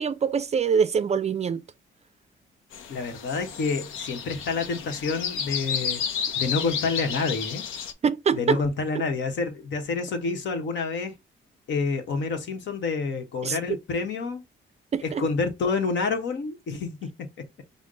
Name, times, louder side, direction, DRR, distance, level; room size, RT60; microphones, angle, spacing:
voice 1, 0.0-1.6 8.0-8.6 13.4-13.6 14.9-15.3, right 6 dB, 35° right, 0.4 m, -24 dB
sound 1, 2.7-7.9, left 7 dB, 85° left, 0.7 m, -32 dB
voice 2, 2.9-6.0 6.4-7.6 8.3-11.1 11.7-14.4 15.0-17.3, left 4 dB, 65° left, 1.1 m, -28 dB
5.1 x 2.1 x 3.7 m
cardioid pair, 90°, 20 cm